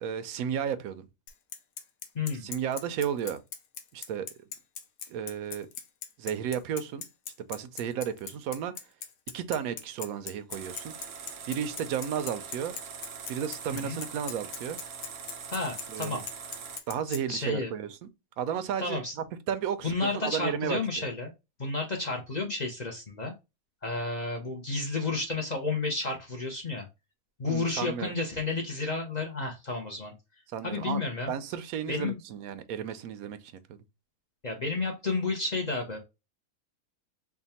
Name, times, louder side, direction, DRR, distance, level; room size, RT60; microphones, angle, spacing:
voice 1, 0.0-1.1 2.4-3.4 3.9-4.3 5.1-5.7 6.2-7.0 7.5-8.7 9.3-10.9 11.5-12.7 13.3-14.8 15.9-16.2 16.9-18.1 18.4-20.8 27.4-28.1 30.5-31.0 31.3-33.8, right 8 dB, 90° right, 1.0 m, -33 dB
Bicycle, 1.3-17.2, left 8 dB, 75° left, 1.1 m, -39 dB
voice 2, 2.1-2.5 13.7-14.0 15.5-16.2 17.3-17.7 18.8-19.1 19.8-21.3 21.6-23.3 23.8-26.9 27.4-30.1 30.6-31.3 31.9-32.2 34.4-36.0, left 3 dB, 40° left, 0.6 m, -31 dB
sound 1, 10.5-16.8, right 6 dB, 60° right, 0.8 m, -42 dB
3.5 x 2.2 x 4.1 m
omnidirectional pair, 1.5 m